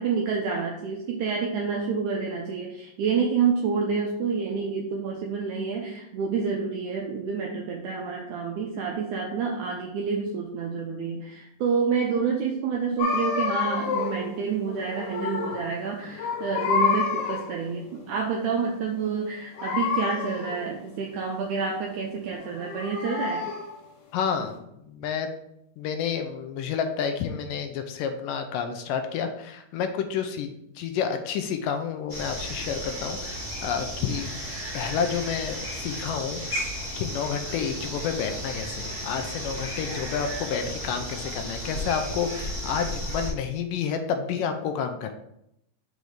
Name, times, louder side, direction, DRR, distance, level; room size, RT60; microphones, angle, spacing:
voice 1, 0.0-23.4, right 5 dB, 75° right, 0 dB, 1.9 m, -28 dB
sound 1, 13.0-14.3 14.7-15.7 16.0-17.6 19.5-20.7 22.3-23.8, left 5 dB, 65° left, 2.4 m, -28 dB
voice 2, 24.1-25.3 25.8-34.3 34.7-36.6 37.0-45.1, left 7 dB, 80° left, 7 dB, 2.2 m, -30 dB
sound 2, 32.1-43.3, equal, 5° left, 1.5 m, -34 dB
6.3 x 4.1 x 5.0 m, 0.77 s
omnidirectional pair, 4.1 m